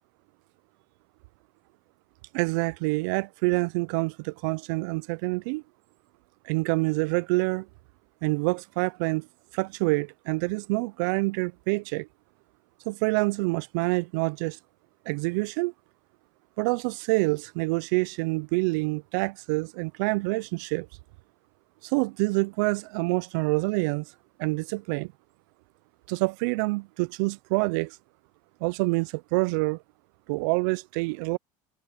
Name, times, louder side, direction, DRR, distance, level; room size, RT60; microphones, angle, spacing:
voice 1, 2.3-5.6 6.4-7.7 8.2-9.3 9.5-12.1 12.9-14.6 15.1-15.7 16.6-20.9 21.8-24.1 24.4-25.1 26.1-28.0 28.6-29.8 30.3-31.4, right 26 dB, 75° right, 0.4 m, -27 dB
supercardioid pair, 130°, 10 cm